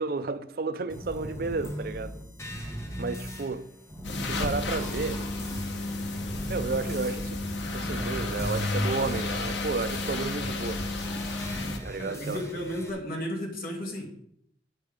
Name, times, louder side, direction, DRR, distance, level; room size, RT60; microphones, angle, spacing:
voice 1, 0.0-2.2 3.0-3.7 4.3-5.2 6.5-7.4 7.7-10.8 11.7-12.4, right 4 dB, 55° right, 0.5 m, -32 dB
sound 1, 0.9-12.9, equal, 15° left, 1.3 m, -38 dB
sound 2, 4.0-11.8, left 2 dB, 80° left, 1.2 m, -32 dB
voice 2, 12.0-14.1, equal, 50° left, 2.5 m, -33 dB
9.6 x 8.5 x 3.7 m
head